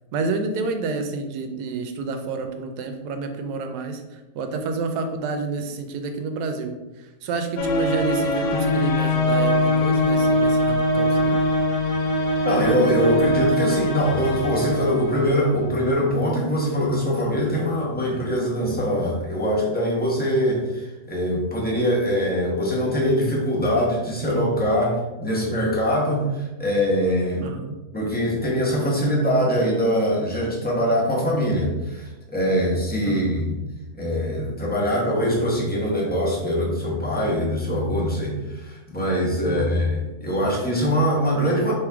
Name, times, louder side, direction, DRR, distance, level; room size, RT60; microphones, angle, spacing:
voice 1, 0.1-11.4 27.4-27.7 33.0-33.5 39.4-39.8, right 4 dB, 80° right, 7 dB, 1.1 m, -29 dB
sound 1, 7.6-15.9, left 1 dB, 85° left, 1.3 m, -22 dB
voice 2, 12.4-27.6 27.9-33.6 33.9-41.7, equal, 10° left, -4 dB, 0.7 m, -23 dB
3.6 x 3.1 x 4.5 m, 1.1 s
omnidirectional pair, 1.8 m